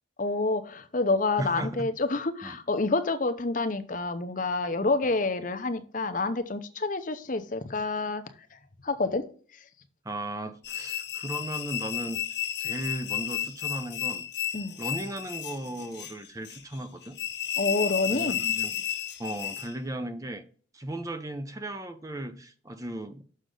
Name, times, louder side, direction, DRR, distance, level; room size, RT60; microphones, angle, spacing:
voice 1, 0.2-8.2 8.5-9.2 14.5-14.8 17.6-18.4, left 3 dB, 45° left, 0.7 m, -28 dB
voice 2, 1.4-1.9 2.4-2.6 10.0-12.2 12.6-14.3 14.8-17.2 18.1-18.8 19.2-20.4 20.7-23.2, right 1 dB, 20° right, 0.6 m, -36 dB
sound 1, 10.6-19.7, left 11 dB, 60° left, 1.1 m, -33 dB
6.4 x 6.4 x 3.9 m
head